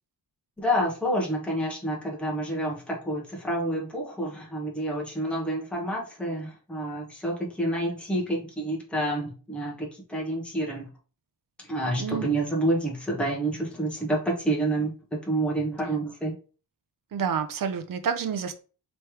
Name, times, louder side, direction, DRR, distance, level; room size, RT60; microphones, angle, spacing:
voice 1, 0.6-10.9 11.7-16.3, right 1 dB, 5° left, 0.9 m, -28 dB
voice 2, 12.0-12.3 17.1-18.5, right 7 dB, 55° right, 0.6 m, -29 dB
3.2 x 3.1 x 4.6 m
wide cardioid pair, 180°, 39 cm